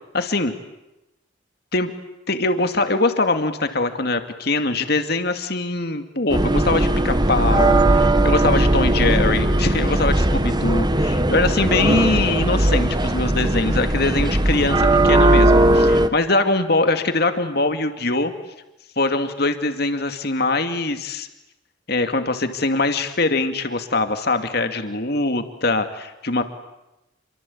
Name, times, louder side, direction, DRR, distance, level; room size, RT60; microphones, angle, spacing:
voice 1, 0.1-0.5 1.7-1.9 2.3-18.3 19.0-21.3 21.9-26.4, left 2 dB, 55° left, 7 dB, 2.4 m, -22 dB
sound 1, 6.3-16.1, right 1 dB, 20° right, 1.0 m, -18 dB
29.0 x 24.0 x 8.7 m, 0.94 s
head